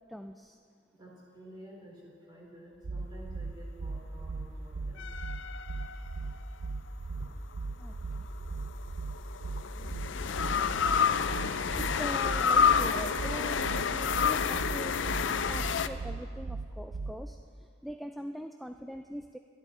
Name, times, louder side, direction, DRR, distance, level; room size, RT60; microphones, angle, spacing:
voice 1, 0.1-0.6 7.8-8.3 11.8-15.0 15.5-19.4, equal, ahead, 5 dB, 0.3 m, -42 dB
voice 2, 0.9-5.1 7.2-7.3 8.9-9.0 9.4-9.6, equal, 25° right, -3 dB, 3.5 m, -51 dB
sound 1, 2.8-17.3, right 3 dB, 85° right, 0.7 m, -38 dB
sound 2, 5.0-6.5 8.4-15.9, left 6 dB, 85° left, 0.5 m, -29 dB
24.5 x 11.0 x 4.3 m, 2.2 s
head